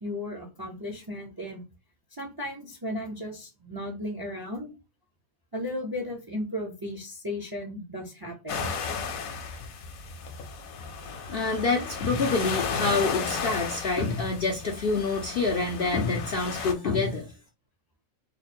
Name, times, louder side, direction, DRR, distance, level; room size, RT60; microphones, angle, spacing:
voice 1, 0.0-1.6 2.1-4.7 5.5-8.7, left 1 dB, 25° right, 0.4 m, -35 dB
sound 1, 8.5-16.7, left 5 dB, 75° left, 1.1 m, -34 dB
voice 2, 11.1-17.3, left 3 dB, 60° left, 0.6 m, -27 dB
3.2 x 2.1 x 4.2 m
omnidirectional pair, 1.5 m